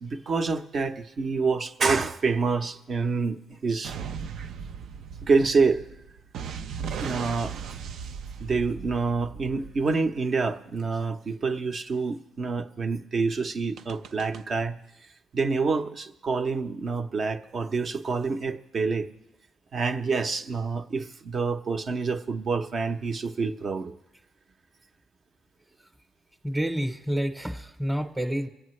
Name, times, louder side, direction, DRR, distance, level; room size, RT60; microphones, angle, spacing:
voice 1, 0.0-4.0 5.2-5.8 7.0-7.6 8.4-14.8 15.3-19.1 19.7-23.9, right 4 dB, 50° right, 7 dB, 0.8 m, -27 dB
sound 1, 3.8-10.2 13.8-14.4, right 6 dB, 75° right, 0.4 m, -37 dB
voice 2, 26.4-28.5, equal, 5° right, 3 dB, 0.9 m, -28 dB
24.5 x 8.6 x 3.2 m, 0.93 s
supercardioid pair, 70°, 0 cm